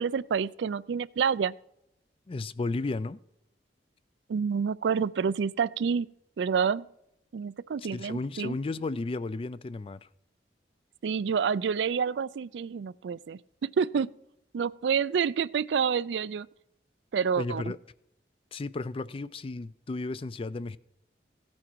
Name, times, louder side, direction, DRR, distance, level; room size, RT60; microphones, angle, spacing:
voice 1, 0.0-1.5 4.3-6.1 6.4-6.9 7.3-8.6 11.0-14.1 14.5-16.5 17.1-17.6, right 6 dB, 80° right, 0.4 m, -28 dB
voice 2, 2.3-3.2 7.8-10.1 17.4-17.8 18.5-20.8, left 3 dB, 30° left, 0.4 m, -34 dB
16.0 x 8.7 x 4.6 m
head